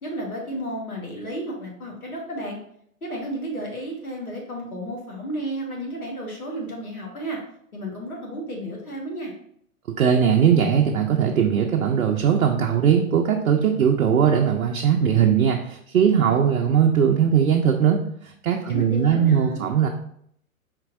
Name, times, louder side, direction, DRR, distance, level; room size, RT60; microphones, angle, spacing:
voice 1, 0.0-2.6 3.0-7.4 7.7-9.3 18.7-19.7, right 1 dB, 85° left, -1 dB, 1.6 m, -32 dB
voice 2, 10.0-18.0 18.2-19.9, right 8 dB, 70° right, 2 dB, 0.6 m, -19 dB
4.4 x 4.2 x 2.6 m, 0.68 s
figure-of-eight pair, 120°, 42 cm